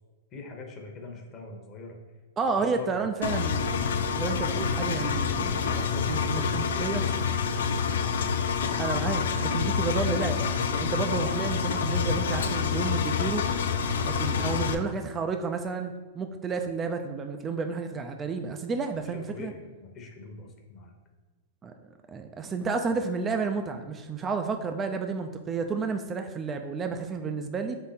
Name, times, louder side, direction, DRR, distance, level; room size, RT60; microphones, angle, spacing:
voice 1, 0.3-2.0 2.5-3.0 5.5-7.2 11.4-11.5 19.0-20.9, left 3 dB, 30° left, 2 dB, 0.9 m, -43 dB
voice 2, 2.4-5.7 6.1-7.0 8.8-13.4 14.0-19.5 21.6-21.7 22.1-27.8, right 4 dB, 20° right, 6 dB, 0.3 m, -31 dB
Engine, 3.2-14.7, left 6 dB, 75° left, 0.4 m, -27 dB
3.7 x 3.4 x 4.1 m, 1.3 s
hypercardioid pair, 125°, 0 cm